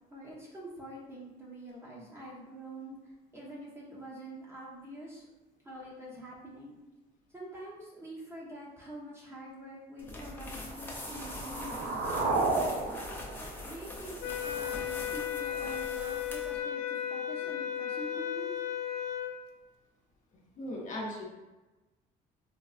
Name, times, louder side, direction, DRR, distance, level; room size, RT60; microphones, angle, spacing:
voice 1, 0.1-5.3 5.6-6.8 7.3-12.8 13.6-18.5, right 1 dB, 15° right, -5 dB, 0.9 m, -46 dB
sound 1, 10.0-16.6, left 1 dB, 10° left, 0.6 m, -43 dB
sound 2, 10.6-14.6, right 3 dB, 75° right, 0.7 m, -33 dB
sound 3, 14.2-19.4, left 10 dB, 70° left, 0.4 m, -35 dB
voice 2, 20.6-21.2, left 1 dB, 45° left, -2 dB, 0.7 m, -37 dB
4.2 x 2.2 x 2.4 m, 1.1 s
cardioid pair, 110°, 17 cm